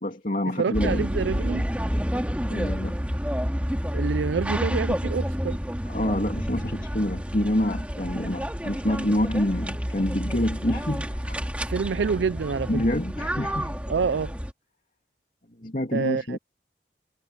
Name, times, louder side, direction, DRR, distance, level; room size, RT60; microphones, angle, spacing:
voice 1, 0.0-1.1 2.5-3.0 5.9-11.4 11.9-12.0 12.7-13.7 15.6-16.4, left 1 dB, 50° left, 2.8 m, -27 dB
voice 2, 0.6-1.6 3.9-5.6 11.7-12.8 13.9-14.3 15.9-16.4, right 5 dB, 90° right, 0.4 m, -27 dB
sound 1, 0.7-14.5, equal, 10° right, 2.4 m, -29 dB
head